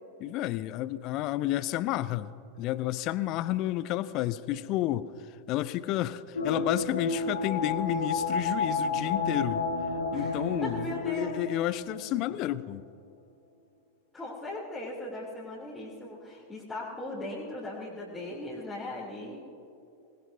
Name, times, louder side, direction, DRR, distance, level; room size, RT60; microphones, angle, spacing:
voice 1, 0.2-2.3 2.6-5.1 5.5-9.6 10.1-12.8, left 14 dB, 40° left, 17 dB, 0.5 m, -31 dB
sound 1, 6.4-12.3 12.6-12.7, left 3 dB, 75° left, 1.4 m, -31 dB
voice 2, 10.1-11.4 14.1-19.4, left 1 dB, 10° left, -8 dB, 3.3 m, -38 dB
25.0 x 20.0 x 2.7 m, 2.7 s
figure-of-eight pair, 90°, 0 cm